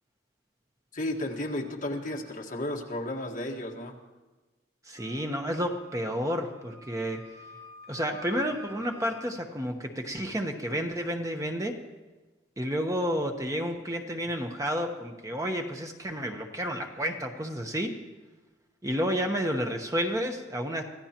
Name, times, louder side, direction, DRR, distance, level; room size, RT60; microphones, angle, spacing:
voice 1, 0.9-4.0, left 1 dB, 45° left, 0 dB, 1.6 m, -33 dB
voice 2, 4.8-7.2 7.9-11.7 12.6-17.9 18.8-20.8, equal, 15° right, 3 dB, 1.0 m, -31 dB
Wind instrument woodwind instrument, 5.0-9.3, left 1 dB, 80° right, 6.6 m, -50 dB
25.5 x 15.5 x 3.0 m, 1.2 s
head